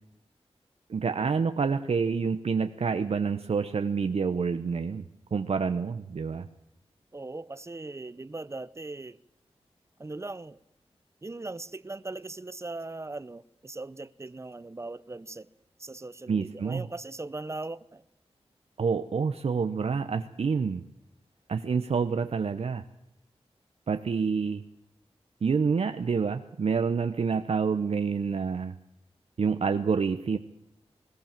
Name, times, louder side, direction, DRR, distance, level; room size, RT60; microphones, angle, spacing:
voice 1, 0.9-5.1 5.3-6.5 16.3-16.8 18.8-20.8 21.5-22.8 23.9-24.6 25.4-28.7 29.4-30.4, right 5 dB, 65° right, 0.8 m, -28 dB
voice 2, 7.1-9.2 10.0-10.6 11.2-15.5 15.8-18.0, right 2 dB, 25° right, 0.7 m, -39 dB
20.5 x 18.0 x 7.4 m
wide cardioid pair, 105°, 11 cm